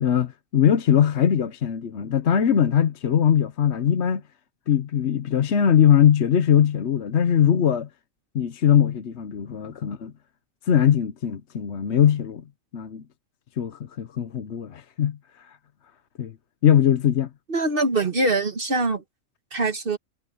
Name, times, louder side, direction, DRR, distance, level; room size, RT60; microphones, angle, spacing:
voice 1, 0.0-4.2 4.7-7.9 8.3-10.1 10.6-12.4 12.7-13.0 13.6-15.6 16.2-16.3 16.6-17.3, left 9 dB, 65° left, 1.1 m, -21 dB
voice 2, 17.5-19.0 19.5-20.0, right 2 dB, 45° right, 1.6 m, -23 dB
omnidirectional pair, 1.3 m